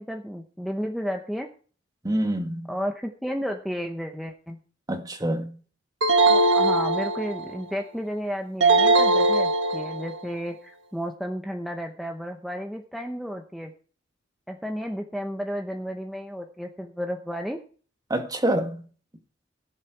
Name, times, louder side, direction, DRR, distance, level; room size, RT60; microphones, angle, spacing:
voice 1, 0.0-1.5 2.7-4.6 6.3-13.7 14.5-17.6, equal, ahead, 0.9 m, -32 dB
voice 2, 2.0-2.7 4.9-5.6 18.1-18.9, right 1 dB, 20° right, 1.6 m, -26 dB
magic bonus game intro, 6.0-7.6 8.6-10.2, right 2 dB, 80° right, 1.7 m, -20 dB
17.0 x 7.4 x 4.7 m
head